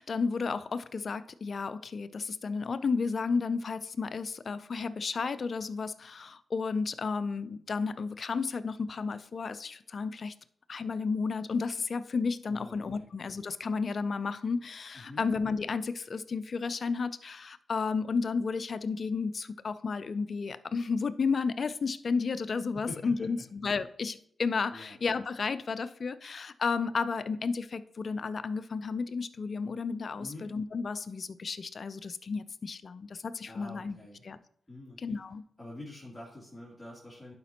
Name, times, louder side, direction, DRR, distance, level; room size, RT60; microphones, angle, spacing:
voice 1, 0.0-10.3 10.7-34.0 34.2-34.4 35.0-35.4, left 4 dB, 60° left, 0.4 m, -32 dB
voice 2, 12.5-13.1 14.9-15.2 22.7-23.5 24.7-25.0 30.2-30.5 33.5-34.3 34.7-35.0 35.6-37.3, left 2 dB, 20° left, 2.7 m, -46 dB
11.0 x 5.0 x 2.9 m
supercardioid pair, 45°, 0 cm